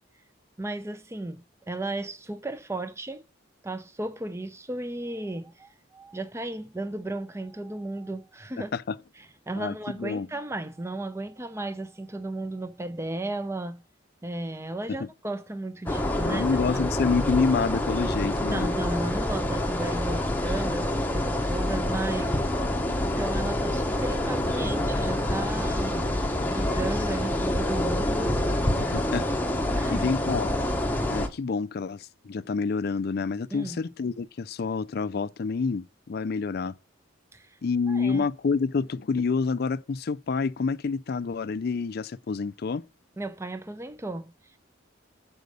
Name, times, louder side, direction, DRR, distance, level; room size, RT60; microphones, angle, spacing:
voice 1, 0.6-1.4 1.7-3.2 3.6-8.7 9.2-13.8 14.2-16.5 16.7-16.8 18.2-22.4 23.0-26.1 26.4-28.4 29.8-30.1 33.5-33.8 37.3-37.6 37.9-38.3 43.2-44.6, right 2 dB, 15° right, 0.5 m, -35 dB
voice 2, 8.6-9.0 9.6-10.3 14.9-15.1 16.2-18.7 28.6-29.3 29.9-30.5 31.1-36.7 37.6-42.8, left 4 dB, 50° left, 0.4 m, -28 dB
sound 1, 15.9-31.3, left 1 dB, 10° left, 0.8 m, -27 dB
6.8 x 5.0 x 6.4 m
head